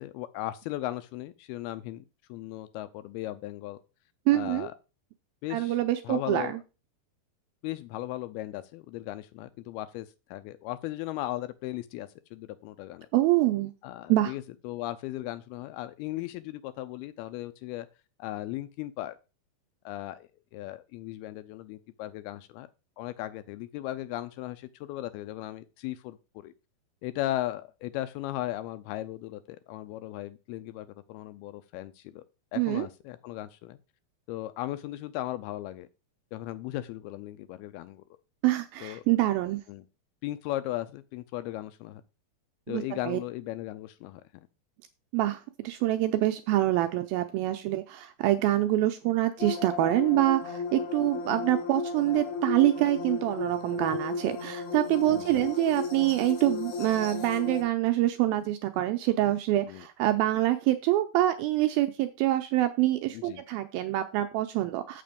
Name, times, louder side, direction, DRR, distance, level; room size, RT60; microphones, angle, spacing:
voice 1, 0.0-2.0 2.3-3.8 4.3-4.7 5.4-5.8 6.0-6.6 7.6-13.1 13.8-17.9 18.2-19.2 19.9-22.7 23.0-26.2 26.4-26.5 27.0-32.2 32.5-33.8 34.3-35.9 36.3-38.0 38.8-39.0 39.7-39.9 40.2-42.0 42.7-44.5 55.1-55.5 59.7-59.9 63.1-63.4, left 15 dB, 80° left, 2.3 m, -37 dB
voice 2, 4.3-4.7 5.5-6.5 13.1-13.7 14.1-14.3 32.6-32.9 38.4-39.6 42.7-43.2 45.1-65.0, right 15 dB, 80° right, 2.2 m, -26 dB
sound 1, 49.4-57.6, left 5 dB, 60° left, 1.9 m, -34 dB
7.6 x 5.9 x 5.1 m
omnidirectional pair, 4.7 m